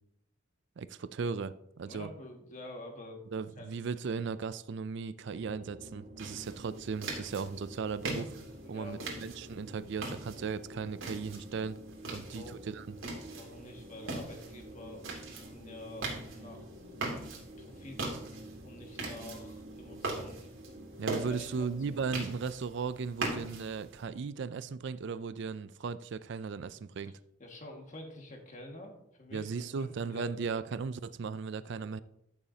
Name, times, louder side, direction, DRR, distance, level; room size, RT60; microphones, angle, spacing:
voice 1, 0.8-2.1 3.3-8.4 8.7-11.8 12.1-12.9 21.0-27.2 29.3-32.0, right 5 dB, 60° right, 0.4 m, -37 dB
voice 2, 1.8-3.2 3.6-3.9 8.6-9.2 12.1-12.6 13.3-17.1 17.6-18.1 18.6-20.4 21.3-22.0 27.4-29.5 29.8-30.3, left 1 dB, 40° left, 1.9 m, -48 dB
sound 1, 5.2-22.2, right 1 dB, 45° right, 1.5 m, -50 dB
sound 2, 6.2-24.0, right 2 dB, 85° right, 2.7 m, -42 dB
14.0 x 7.0 x 2.8 m
head